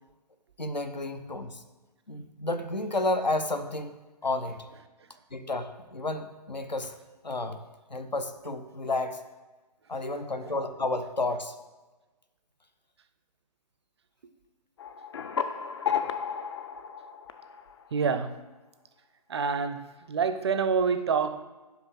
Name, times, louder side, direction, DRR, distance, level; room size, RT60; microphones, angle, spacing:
voice 1, 0.6-1.6 2.1-3.9 4.2-4.7 5.3-7.0 7.2-7.6 7.9-9.2 9.9-11.5, left 2 dB, 90° left, 11 dB, 0.7 m, -31 dB
sound 1, 14.8-18.1, left 7 dB, 40° left, 0.4 m, -33 dB
voice 2, 17.9-18.4 19.3-21.4, right 5 dB, 40° right, 10 dB, 0.4 m, -27 dB
5.9 x 4.9 x 5.6 m, 1.2 s
figure-of-eight pair, 135°, 21 cm